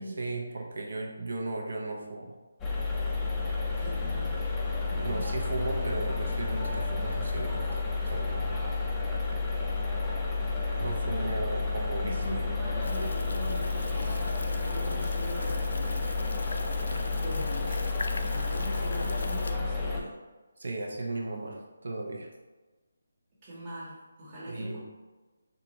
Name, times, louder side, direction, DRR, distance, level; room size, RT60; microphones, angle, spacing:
voice 1, 0.0-2.4 5.0-8.7 10.8-12.4 20.6-22.3 24.5-24.8, right 2 dB, 65° right, 1 dB, 0.7 m, -36 dB
sound 1, 2.6-20.0, left 3 dB, 10° left, 0.4 m, -31 dB
voice 2, 3.8-4.3 4.8-5.3 11.2-11.4 12.0-16.9 17.2-17.8 18.3-20.1 23.4-23.9 24.2-24.8, equal, 25° right, -10 dB, 1.1 m, -41 dB
sound 2, 12.8-19.6, left 2 dB, 75° left, 0.3 m, -39 dB
3.9 x 2.3 x 3.0 m, 1.2 s
figure-of-eight pair, 160°, 0 cm